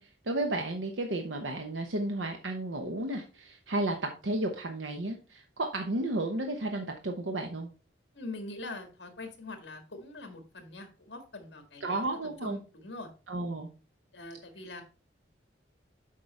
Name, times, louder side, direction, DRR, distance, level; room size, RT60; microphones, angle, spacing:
voice 1, 0.0-7.7 11.8-12.6 13.3-13.7, right 2 dB, 90° right, 4 dB, 0.9 m, -33 dB
voice 2, 8.1-12.0 12.4-13.1 14.1-14.8, left 2 dB, 70° left, 6 dB, 1.7 m, -43 dB
7.6 x 5.2 x 4.1 m, 0.34 s
head